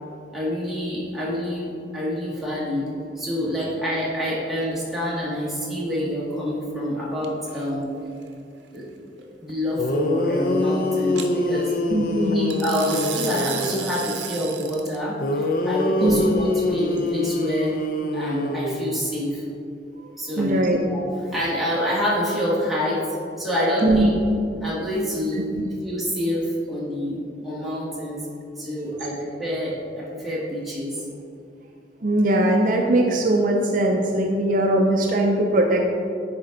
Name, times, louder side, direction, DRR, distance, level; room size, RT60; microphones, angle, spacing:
voice 1, 0.3-2.9 3.2-7.9 8.7-8.9 9.4-11.7 12.3-17.7 18.1-19.4 20.2-23.0 23.4-24.1 24.6-25.6 25.8-28.3 28.6-31.0, equal, ahead, -8 dB, 1.7 m, -27 dB
sound 1, 7.2-7.6 11.2-11.3 12.5-15.0, right 9 dB, 85° right, 0.7 m, -33 dB
sound 2, 9.5-9.6 9.8-13.9 15.2-19.2, left 2 dB, 50° left, 0.5 m, -25 dB
voice 2, 11.9-12.5 16.0-16.2 20.4-20.8 23.8-24.1 32.0-35.8, right 1 dB, 50° right, 2 dB, 0.5 m, -20 dB
10.5 x 4.3 x 3.8 m, 2.5 s
head